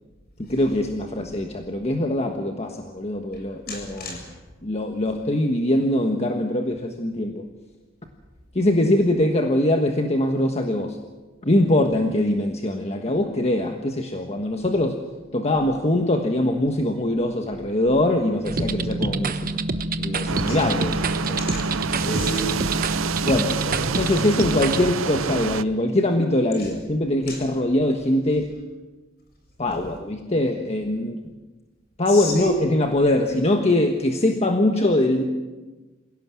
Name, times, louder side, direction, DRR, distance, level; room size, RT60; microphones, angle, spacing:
voice 1, 0.4-4.2 4.6-7.4 8.5-11.0 11.4-15.0 15.3-19.6 20.0-21.4 23.2-23.6 24.0-28.5 29.6-31.2 32.0-35.2, left 1 dB, 30° left, 4 dB, 1.4 m, -22 dB
voice 2, 3.7-4.3 20.5-20.7 21.4-22.8 23.6-23.8 26.6-26.7 27.3-27.4 32.1-32.6, right 1 dB, 50° left, 2 dB, 7.4 m, -31 dB
sound 1, 18.4-24.8, right 2 dB, 45° right, 1.1 m, -27 dB
sound 2, 20.3-25.6, right 6 dB, 75° right, 0.6 m, -28 dB
27.0 x 17.0 x 7.6 m, 1.2 s
head